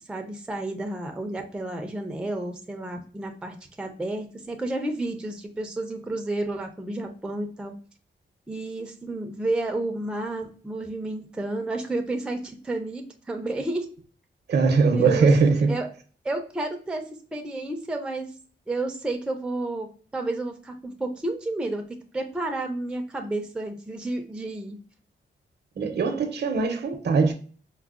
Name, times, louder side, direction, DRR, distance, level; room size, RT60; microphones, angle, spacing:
voice 1, 0.1-7.7 8.5-13.9 14.6-15.9 16.2-17.0 17.3-18.3 18.7-21.8 22.1-24.8, right 2 dB, 5° right, 0.4 m, -31 dB
voice 2, 14.5-15.8 25.8-27.3, right 4 dB, 60° right, 0.6 m, -21 dB
4.5 x 2.0 x 2.3 m
wide cardioid pair, 155°, 19 cm